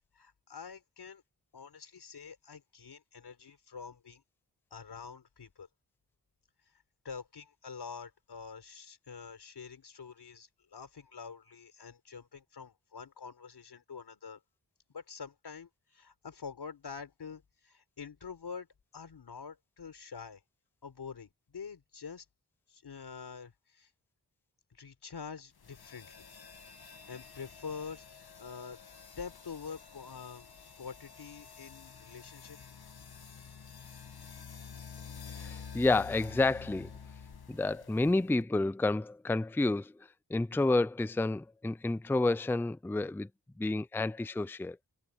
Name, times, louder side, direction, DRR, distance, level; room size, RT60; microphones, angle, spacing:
voice 1, 0.2-1.2 1.5-4.2 4.7-5.7 7.0-14.4 14.9-18.7 18.9-20.4 20.8-22.3 22.7-23.9 24.7-26.2 27.1-28.8 29.2-32.6, left 6 dB, 90° left, 4.1 m, -46 dB
sound 1, 25.6-38.4, left 6 dB, 70° left, 2.0 m, -49 dB
voice 2, 35.4-36.9 37.5-39.9 40.3-43.3 43.6-44.8, left 2 dB, 5° left, 0.5 m, -30 dB
wide cardioid pair, 80°, 38 cm